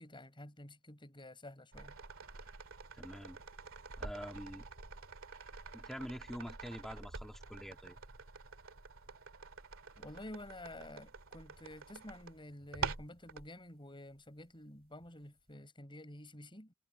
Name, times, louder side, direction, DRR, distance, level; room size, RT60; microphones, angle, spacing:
voice 1, 0.0-2.0 10.0-16.7, left 1 dB, 25° left, 7.6 m, -50 dB
sound 1, 1.7-13.5 15.0-15.1, right 5 dB, 80° right, 2.3 m, -47 dB
voice 2, 2.9-3.4 4.0-4.7 5.7-8.0, equal, ahead, 3.5 m, -46 dB
head